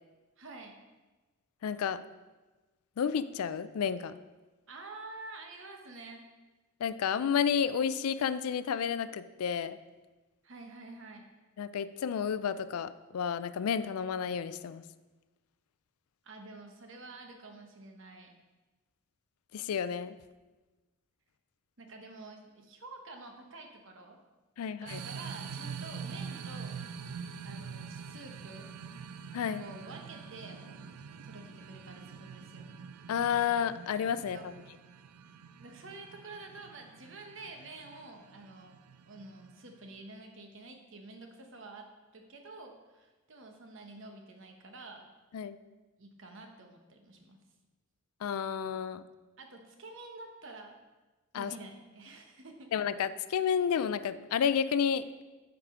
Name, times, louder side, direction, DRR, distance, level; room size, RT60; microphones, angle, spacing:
voice 1, 0.4-0.8 4.7-6.2 10.4-11.3 16.2-18.3 21.8-24.2 24.7-28.7 29.6-32.7 34.3-34.6 35.6-41.9 42.1-45.1 46.0-47.4 49.4-50.8 51.3-52.7, right 2 dB, 55° right, 4 dB, 1.0 m, -49 dB
voice 2, 1.6-2.0 3.0-4.2 6.8-9.8 11.6-14.8 19.5-20.2 24.6-25.0 29.3-29.6 33.1-34.4 45.3-45.6 48.2-49.0 51.3-51.5 52.7-55.1, left 7 dB, 80° left, 14 dB, 0.4 m, -31 dB
sound 1, 24.9-39.9, right 6 dB, 80° right, 0.4 m, -45 dB
9.2 x 4.8 x 3.7 m, 1.2 s
head